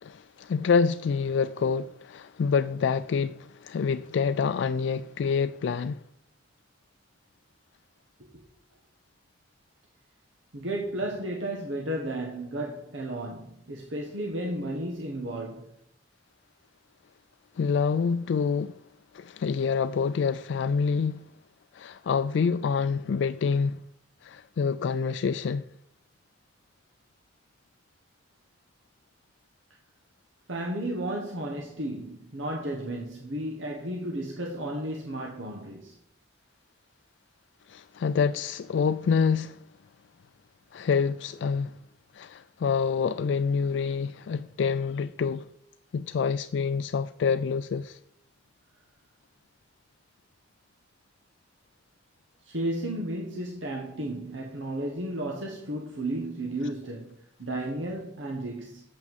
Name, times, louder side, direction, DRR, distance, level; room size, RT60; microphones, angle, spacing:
voice 1, 0.0-6.0 17.6-18.8 19.1-21.2 21.7-23.8 24.2-25.6 37.7-39.6 40.7-41.8 42.1-45.5 45.9-48.0, left 5 dB, 70° left, 0.3 m, -27 dB
voice 2, 10.5-15.7 30.5-35.9 52.4-58.8, right 1 dB, 90° right, 1.4 m, -33 dB
7.5 x 6.1 x 7.2 m
head